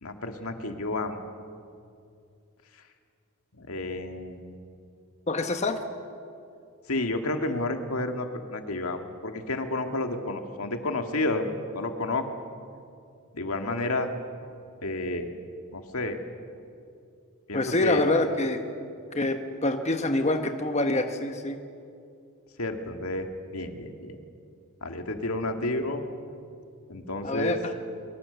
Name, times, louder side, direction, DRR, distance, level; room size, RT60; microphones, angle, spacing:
voice 1, 0.0-1.2 3.6-4.5 6.9-11.5 11.7-12.2 13.3-14.1 14.8-15.3 15.7-16.2 17.5-18.0 22.6-23.3 23.5-24.2 24.8-26.0 26.9-27.6, left 2 dB, 80° left, 5 dB, 2.0 m, -30 dB
voice 2, 5.3-5.8 17.5-18.6 19.1-21.6 27.2-27.7, left 2 dB, 30° left, 6 dB, 1.2 m, -26 dB
23.5 x 23.5 x 6.9 m, 2.4 s
head